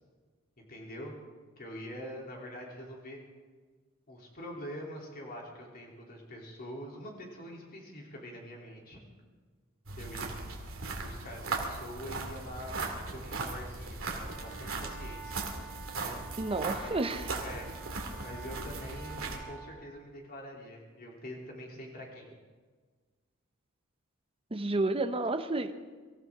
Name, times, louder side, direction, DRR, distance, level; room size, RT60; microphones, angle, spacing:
voice 1, 0.6-1.2 1.6-3.2 4.1-9.0 9.9-10.3 10.9-12.8 13.1-15.4 16.0-16.2 16.6-17.8 18.2-22.3, equal, 45° left, -1 dB, 3.3 m, -45 dB
sound 1, 9.9-19.4, right 3 dB, 65° right, 2.4 m, -38 dB
sound 2, 14.2-19.7, right 6 dB, ahead, 2.9 m, -49 dB
voice 2, 16.4-17.3 24.5-25.7, right 2 dB, 25° right, 8 dB, 0.8 m, -30 dB
25.0 x 15.0 x 3.7 m, 1.4 s
head